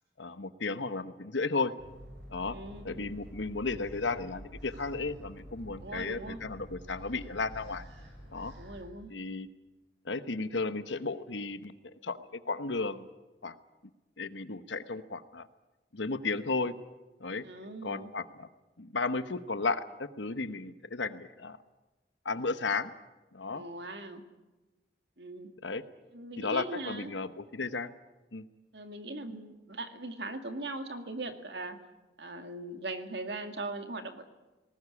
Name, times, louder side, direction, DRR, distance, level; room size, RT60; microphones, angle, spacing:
voice 1, 0.2-1.7 2.3-2.6 2.8-7.8 8.3-8.5 9.1-9.5 10.0-11.7 12.0-13.1 13.4-13.5 14.2-15.5 15.9-16.7 17.2-17.4 17.8-18.5 18.8-21.6 22.2-22.9 23.3-23.6 25.6-25.8 26.4-27.9 28.3-28.5, left 3 dB, 85° left, 12 dB, 1.1 m, -34 dB
sound 1, 1.8-8.8, equal, 90° right, 7.4 m, -48 dB
voice 2, 2.5-3.1 5.8-6.4 8.6-9.1 17.4-18.1 23.5-24.2 25.2-25.5 26.1-27.1 28.7-31.8 32.2-34.2, right 2 dB, 70° right, 7 dB, 2.1 m, -40 dB
19.5 x 19.0 x 9.8 m, 1.1 s
head